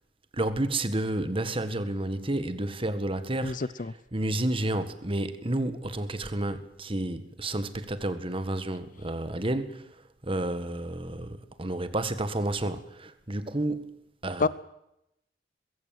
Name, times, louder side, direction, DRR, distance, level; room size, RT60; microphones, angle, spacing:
voice 1, 0.3-14.0 14.2-14.5, right 1 dB, 30° right, 1.7 m, -31 dB
voice 2, 3.4-3.9 14.4-14.5, left 4 dB, 45° left, 0.7 m, -27 dB
21.5 x 16.0 x 9.2 m
head